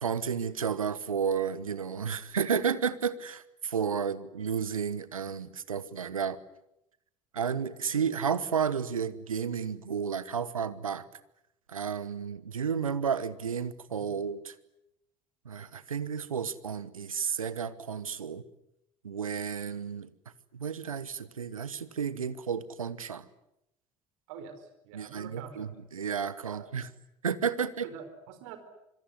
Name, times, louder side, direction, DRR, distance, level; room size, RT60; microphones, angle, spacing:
voice 1, 0.0-6.4 7.3-11.1 11.7-14.5 15.4-18.4 19.0-20.1 20.5-23.2 24.9-26.9 27.2-27.9, right 7 dB, 80° right, 16 dB, 1.2 m, -32 dB
voice 2, 13.9-14.2 24.3-25.7 26.4-26.7 27.8-28.6, right 7 dB, 65° right, 9 dB, 4.6 m, -46 dB
25.5 x 22.5 x 9.8 m, 0.85 s
figure-of-eight pair, 60°, 17 cm